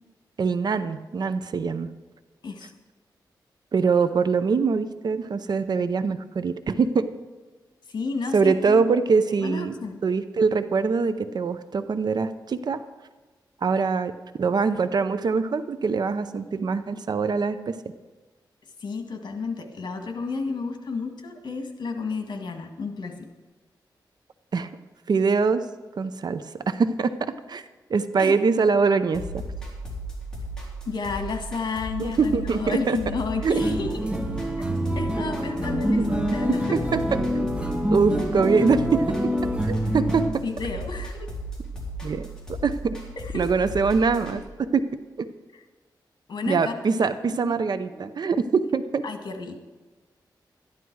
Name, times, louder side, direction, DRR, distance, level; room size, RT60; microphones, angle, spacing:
voice 1, 0.4-1.9 3.7-7.1 8.3-9.7 10.0-12.8 13.6-14.1 14.4-17.8 24.5-24.7 25.1-25.6 26.0-27.6 27.9-29.4 32.0-33.0 33.4-33.5 35.9-36.0 36.7-37.2 37.9-39.3 39.7-40.4 42.0-42.2 42.5-43.0 43.3-44.9 45.2-45.3 46.5-49.0, right 5 dB, 60° right, 11 dB, 0.6 m, -23 dB
voice 2, 7.9-8.9 9.4-10.0 18.8-23.1 28.2-28.3 30.8-34.1 34.9-36.8 40.4-41.3 43.2-43.5 46.3-46.7 47.4-48.1 49.0-49.6, left 3 dB, 70° left, 5 dB, 1.8 m, -31 dB
sound 1, 29.1-44.4, right 1 dB, 10° left, 3.7 m, -36 dB
sound 2, 33.6-40.3, equal, 15° right, 1.2 m, -26 dB
13.0 x 11.0 x 4.7 m, 1.3 s
wide cardioid pair, 105°, 8 cm